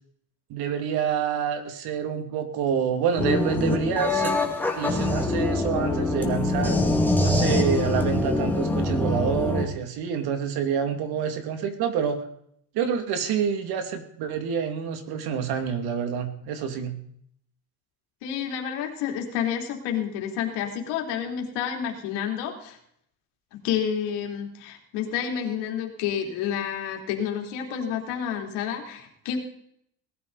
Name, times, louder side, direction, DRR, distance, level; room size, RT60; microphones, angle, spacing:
voice 1, 0.5-4.3 4.8-6.8 7.2-12.2 12.7-17.0, right 7 dB, 70° right, 7 dB, 2.6 m, -27 dB
sound 1, 3.2-9.6, left 2 dB, 5° left, 2.3 m, -24 dB
voice 2, 18.2-22.8 23.5-29.4, left 8 dB, 90° left, 2 dB, 3.5 m, -29 dB
19.0 x 13.0 x 4.1 m, 0.68 s
cardioid pair, 145°, 40 cm